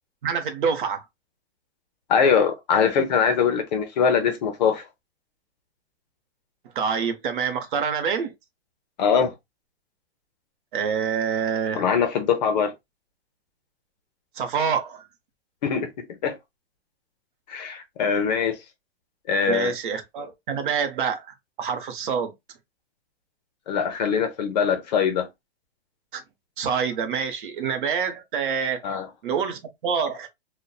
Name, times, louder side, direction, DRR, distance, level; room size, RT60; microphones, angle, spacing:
voice 1, 0.2-1.0 6.8-8.3 10.7-11.8 14.4-15.1 19.5-22.3 26.1-26.2 26.6-28.8 29.2-30.3, right 6 dB, 50° right, 0.7 m, -26 dB
voice 2, 2.1-4.8 9.0-9.3 11.7-12.7 15.6-15.9 16.2-16.4 17.5-18.6 19.3-19.7 23.7-25.3 28.8-29.1, left 6 dB, 40° left, 0.6 m, -22 dB
2.8 x 2.1 x 2.2 m
hypercardioid pair, 155°, 32 cm